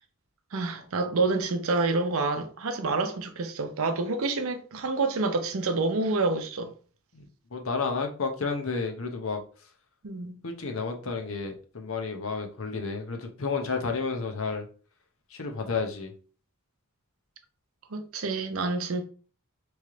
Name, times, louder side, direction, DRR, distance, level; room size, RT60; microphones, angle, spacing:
voice 1, 0.5-6.7 10.0-10.4 17.9-19.0, right 3 dB, 65° right, 0.6 m, -28 dB
voice 2, 7.1-9.4 10.4-14.7 15.3-16.1, left 4 dB, 65° left, 0.8 m, -31 dB
3.3 x 3.1 x 3.7 m
head